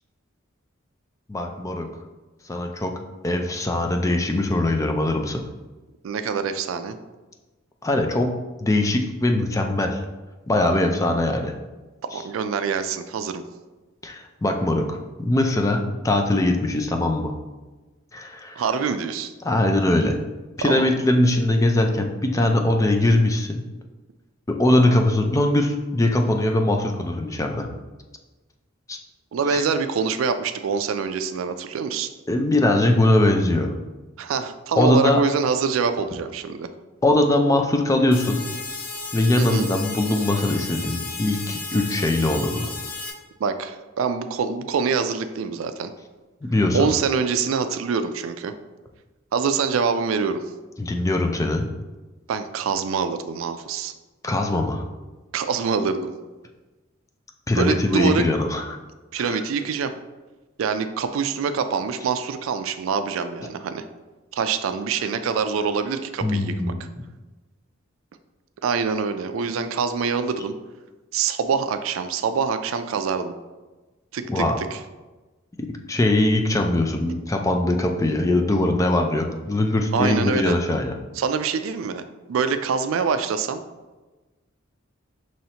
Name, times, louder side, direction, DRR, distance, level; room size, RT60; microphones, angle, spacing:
voice 1, 1.3-1.9 2.5-2.9 3.2-5.4 7.8-8.3 8.6-10.0 10.5-11.6 12.1-12.2 14.0-17.3 18.1-18.6 19.4-20.2 20.6-23.6 24.5-27.7 28.9-29.0 29.5-29.6 32.3-33.7 34.8-35.2 37.0-38.5 39.1-42.7 46.4-46.9 50.8-51.7 54.2-54.9 57.5-58.7 59.2-59.4 66.2-66.8 74.3-74.6 75.6-80.9, left 1 dB, 15° left, 4 dB, 0.4 m, -21 dB
voice 2, 6.0-7.0 12.1-13.4 18.6-19.3 20.6-20.9 29.3-32.1 34.2-36.7 39.4-39.7 43.4-45.9 46.7-48.5 49.3-50.4 52.3-53.9 55.3-56.1 57.5-58.3 59.1-59.9 60.6-63.8 64.3-66.7 68.6-70.6 71.1-73.3 74.1-74.8 79.9-80.5 81.2-82.0 82.3-83.6, right 5 dB, 80° right, 10 dB, 0.4 m, -25 dB
sound 1, 38.1-43.1, left 3 dB, 55° left, 0.9 m, -34 dB
5.6 x 3.1 x 2.8 m, 1.2 s
head